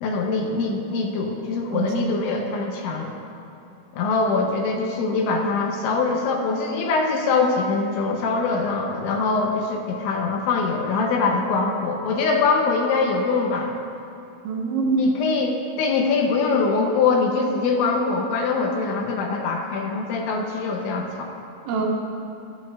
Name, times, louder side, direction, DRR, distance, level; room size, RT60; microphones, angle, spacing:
voice 1, 0.0-3.1 3.9-13.7 15.0-21.3, left 4 dB, 80° left, 1 dB, 3.0 m, -23 dB
voice 2, 1.7-2.2 14.4-15.1 21.7-21.8, right 3 dB, 75° right, -2 dB, 3.2 m, -24 dB
16.5 x 11.5 x 2.4 m, 2.7 s
omnidirectional pair, 5.6 m